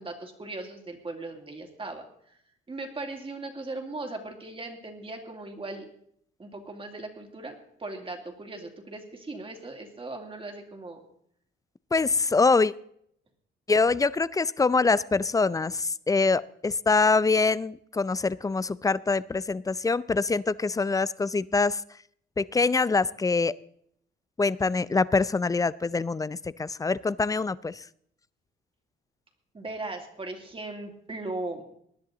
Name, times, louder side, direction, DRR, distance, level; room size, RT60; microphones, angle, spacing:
voice 1, 0.0-2.4 2.7-5.9 6.4-7.5 7.8-11.0 29.5-31.6, right 2 dB, 25° right, 3 dB, 2.7 m, -38 dB
voice 2, 11.9-12.7 13.7-21.8 22.4-23.5 24.4-27.8, left 4 dB, 15° left, 20 dB, 0.4 m, -24 dB
19.5 x 10.5 x 3.9 m, 0.68 s
cardioid pair, 90°, 20 cm